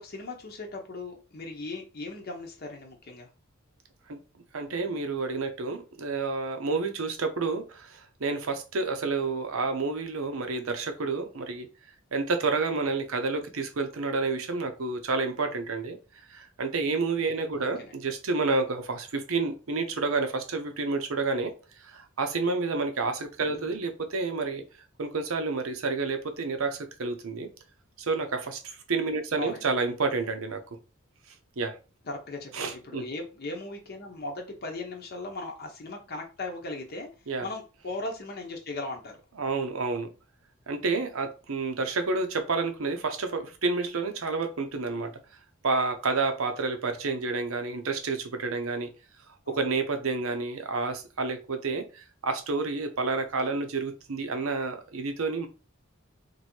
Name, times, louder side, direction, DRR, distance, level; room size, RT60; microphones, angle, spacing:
voice 1, 0.0-3.3 17.6-17.9 23.5-23.7 29.4-29.7 32.1-37.1 37.4-39.2 49.5-49.6, left 2 dB, 45° left, 2 dB, 0.7 m, -38 dB
voice 2, 4.5-11.7 12.1-16.0 16.3-21.5 21.8-24.6 25.0-27.5 28.0-30.6 31.6-31.8 32.5-33.0 37.3-37.5 39.4-40.1 40.7-45.1 45.6-48.9 49.5-55.5, right 3 dB, 75° right, 7 dB, 0.7 m, -29 dB
3.0 x 2.7 x 4.3 m, 0.33 s
head